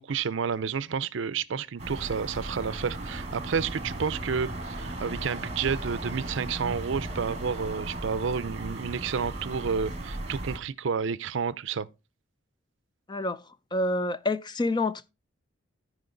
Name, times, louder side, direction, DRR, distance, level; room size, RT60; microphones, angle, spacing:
voice 1, 0.0-11.9, right 6 dB, 65° right, 0.5 m, -30 dB
sound 1, 1.8-10.6, right 1 dB, 35° right, 2.0 m, -36 dB
voice 2, 13.1-13.4 13.7-15.1, left 2 dB, 20° left, 0.4 m, -28 dB
13.5 x 5.0 x 3.8 m
head